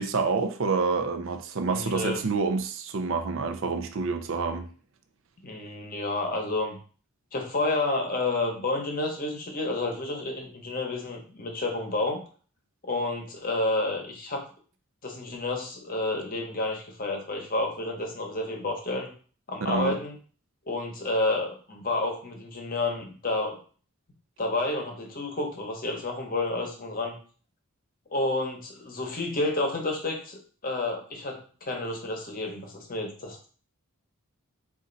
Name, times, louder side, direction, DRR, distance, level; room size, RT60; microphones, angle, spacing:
voice 1, 0.0-4.7 19.6-20.0, right 4 dB, 60° right, 7 dB, 0.5 m, -28 dB
voice 2, 1.7-2.2 5.4-6.8 7.3-12.2 12.8-14.4 15.0-19.1 19.5-20.2 20.7-23.6 24.4-27.2 28.1-33.5, left 2 dB, 40° left, 2 dB, 0.9 m, -30 dB
4.3 x 2.5 x 3.8 m, 0.41 s
head